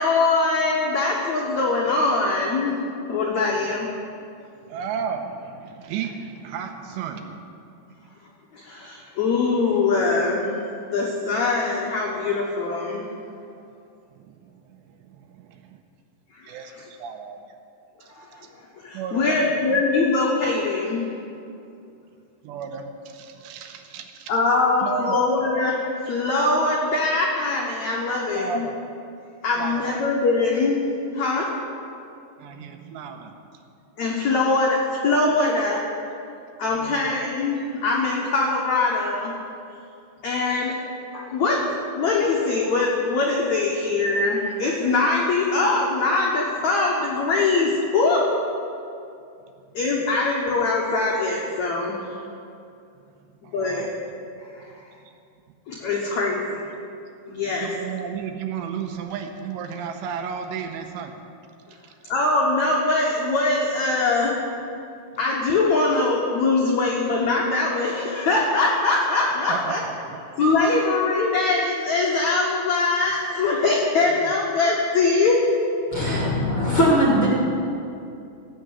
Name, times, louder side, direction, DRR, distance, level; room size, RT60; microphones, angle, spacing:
voice 1, 0.0-3.9 8.5-10.6 10.9-13.1 16.3-16.6 18.2-18.3 18.8-21.1 24.3-28.6 29.4-30.9 31.1-31.5 34.0-35.8 36.6-39.3 40.2-40.7 41.1-41.6 42.0-48.2 49.7-52.0 53.5-53.9 54.5-54.6 55.7-56.7 57.3-57.7 62.1-64.4 65.2-69.8 70.4-75.4, left 3 dB, 80° left, -3 dB, 1.6 m, -22 dB
voice 2, 4.6-7.4 14.1-15.8 16.5-17.6 18.9-19.8 22.4-24.3 24.8-25.2 28.3-28.8 29.6-30.0 32.4-33.3 36.7-37.1 53.1-53.9 54.7-55.1 55.8-55.9 57.4-61.2 61.7-61.9 69.5-70.2 74.1-74.3 76.0-76.2, right 6 dB, 80° right, 5 dB, 2.9 m, -34 dB
voice 3, 75.9-77.3, equal, 45° left, -5 dB, 1.7 m, -20 dB
17.5 x 6.7 x 8.0 m, 2.6 s
omnidirectional pair, 5.2 m